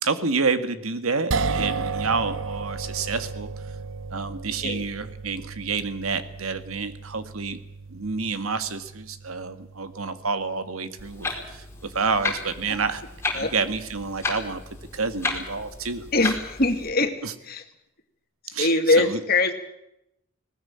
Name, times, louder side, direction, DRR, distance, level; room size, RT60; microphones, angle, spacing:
voice 1, 0.0-3.5 4.1-7.6 7.9-13.0 13.3-14.6 14.9-16.3 17.2-17.3 18.5-19.2, right 4 dB, 90° right, 10 dB, 1.9 m, -29 dB
sound 1, 1.3-13.6, right 4 dB, 65° right, 0.9 m, -35 dB
Clock, 11.0-16.9, left 3 dB, 10° left, 4.6 m, -33 dB
voice 2, 16.1-17.1 17.5-17.6 18.6-19.5, left 2 dB, 45° left, 6 dB, 2.4 m, -22 dB
20.0 x 19.0 x 8.7 m, 0.82 s
head